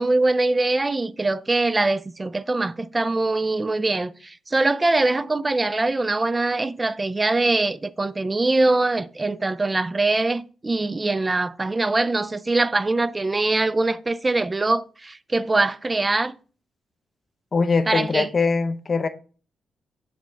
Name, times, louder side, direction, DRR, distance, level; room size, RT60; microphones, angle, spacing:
voice 1, 0.0-16.4 17.9-18.3, right 2 dB, 20° right, 0.3 m, -23 dB
voice 2, 17.5-19.1, left 4 dB, 35° left, 0.5 m, -22 dB
6.3 x 5.2 x 3.3 m
cardioid pair, 130°, 0 cm